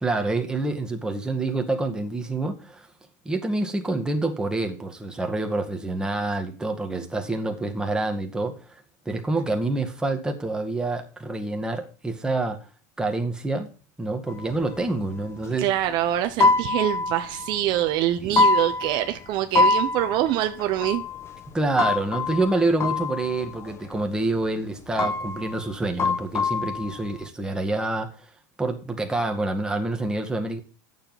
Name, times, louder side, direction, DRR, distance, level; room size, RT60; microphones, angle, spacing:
voice 1, 0.0-2.9 3.3-8.6 9.1-12.6 13.0-13.7 14.0-15.7 18.2-18.4 21.5-28.1 28.6-30.6, right 2 dB, 10° right, 3 dB, 1.9 m, -27 dB
sound 1, 14.3-15.5 15.8-15.9 16.3-18.0 18.3-19.3 19.5-24.0 24.3-24.6 24.9-27.2, left 3 dB, 25° left, 1.2 m, -25 dB
voice 2, 15.6-21.0, right 13 dB, 50° right, 8 dB, 0.9 m, -25 dB
8.9 x 7.4 x 5.9 m, 0.34 s
hypercardioid pair, 110°, 10 cm